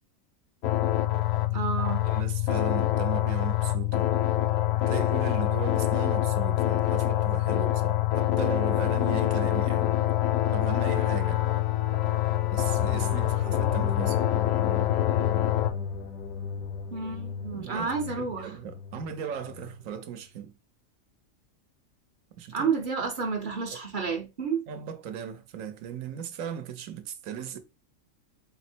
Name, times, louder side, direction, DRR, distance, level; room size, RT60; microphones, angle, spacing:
sound 1, 0.6-15.7, left 14 dB, 65° left, 0.7 m, -25 dB
voice 1, 1.5-2.0 16.9-18.6 22.5-24.6, right 5 dB, 45° right, 0.7 m, -30 dB
voice 2, 2.0-4.1 4.9-10.0 10.5-11.4 12.5-14.2 17.5-20.5 22.4-22.7 24.7-27.6, right 9 dB, 80° right, 1.0 m, -37 dB
sound 2, 12.5-19.8, left 5 dB, 85° left, 1.1 m, -36 dB
4.1 x 2.0 x 4.3 m
omnidirectional pair, 1.4 m